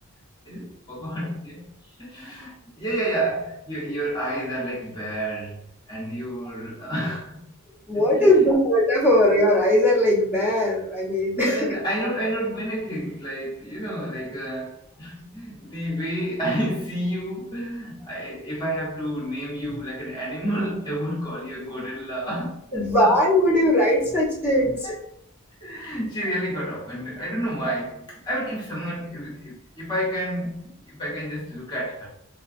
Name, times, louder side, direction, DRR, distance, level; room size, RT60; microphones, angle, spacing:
voice 1, 0.4-7.5 7.9-8.5 11.2-23.2 24.5-25.0 25.6-32.1, right 1 dB, 20° left, 0.8 m, -30 dB
voice 2, 7.9-11.6 22.7-24.8, left 1 dB, 10° right, 0.9 m, -19 dB
3.9 x 2.2 x 2.5 m
head